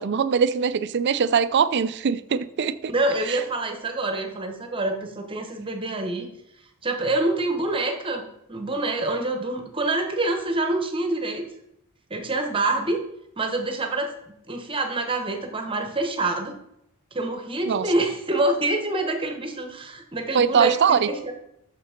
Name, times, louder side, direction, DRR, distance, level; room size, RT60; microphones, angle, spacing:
voice 1, 0.0-2.9 3.3-3.4 17.7-17.9 20.3-21.1, right 6 dB, 55° right, 14 dB, 0.4 m, -22 dB
voice 2, 2.9-6.3 6.8-8.2 8.5-11.4 12.1-13.0 13.4-14.1 14.5-16.5 17.1-21.3, right 2 dB, 25° right, 4 dB, 1.1 m, -26 dB
6.7 x 5.8 x 5.0 m, 0.78 s
head